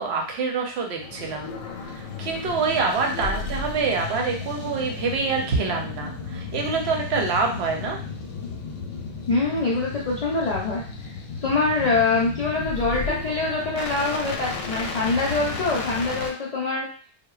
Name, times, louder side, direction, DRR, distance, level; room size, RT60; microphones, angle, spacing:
voice 1, 0.0-1.5 1.8-8.0, right 4 dB, 70° right, 1 dB, 0.8 m, -26 dB
sound 1, 1.0-16.3, left 4 dB, 85° left, 0.9 m, -34 dB
voice 2, 9.3-10.8 11.4-16.9, left 3 dB, 65° left, -4 dB, 0.4 m, -24 dB
2.8 x 2.1 x 2.3 m, 0.42 s
omnidirectional pair, 1.2 m